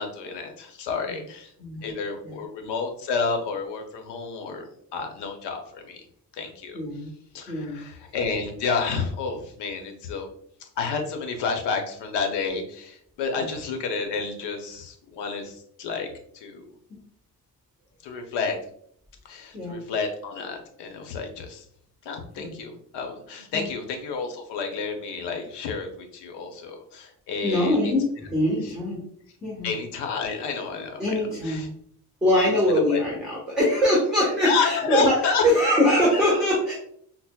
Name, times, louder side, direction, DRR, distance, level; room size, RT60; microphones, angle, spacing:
voice 1, 0.0-1.5 1.8-6.0 6.3-6.8 7.3-10.3 10.6-16.1 16.3-16.6 18.0-18.6 19.2-21.6 22.0-27.9 28.6-28.7 29.6-31.7 32.9-33.0 34.4-35.5, left 5 dB, 85° left, 4 dB, 0.8 m, -30 dB
voice 2, 6.7-7.1 7.5-7.8 13.4-13.5 19.5-19.8 22.4-22.6 23.5-23.7 27.4-29.0 29.4-29.7 31.0-31.7 32.2-35.2 35.4-36.7, left 1 dB, ahead, -6 dB, 1.2 m, -23 dB
5.7 x 2.0 x 2.3 m, 0.66 s
cardioid pair, 100°, 40 cm